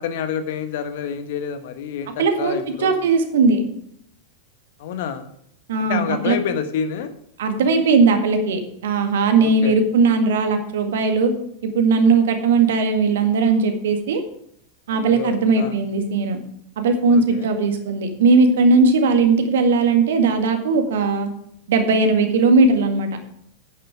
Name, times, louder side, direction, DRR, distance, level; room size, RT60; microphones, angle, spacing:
voice 1, 0.0-3.0 4.8-5.2 5.9-7.1 9.4-9.8 14.9-15.8 17.1-17.5, left 7 dB, 55° left, 9 dB, 1.3 m, -28 dB
voice 2, 2.2-3.7 5.7-6.4 7.4-11.3 11.6-14.2 14.9-16.4 16.8-21.3 21.7-23.2, right 4 dB, 60° right, 6 dB, 1.8 m, -18 dB
9.6 x 9.3 x 4.8 m, 0.71 s
figure-of-eight pair, 90°, 0 cm